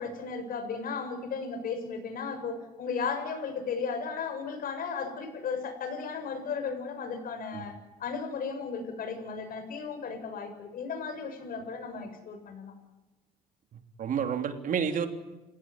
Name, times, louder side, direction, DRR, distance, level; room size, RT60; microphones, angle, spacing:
voice 1, 0.0-7.7 8.0-12.7, left 5 dB, 55° left, 7 dB, 7.1 m, -35 dB
voice 2, 13.7-15.1, right 7 dB, 55° right, 6 dB, 3.3 m, -30 dB
29.5 x 17.0 x 9.9 m, 1.1 s
cardioid pair, 110°, 17 cm